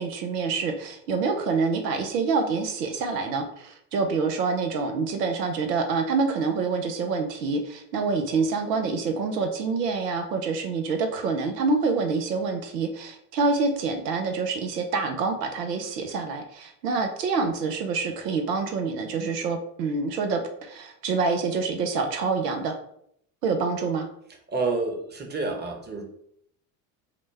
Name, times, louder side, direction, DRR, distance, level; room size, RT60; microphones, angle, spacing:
voice 1, 0.0-22.7 23.4-24.1, right 4 dB, 90° right, 5 dB, 0.7 m, -26 dB
voice 2, 24.5-26.0, right 3 dB, 20° right, 2 dB, 1.0 m, -28 dB
4.9 x 2.1 x 3.2 m, 0.71 s
hypercardioid pair, 70°, 47 cm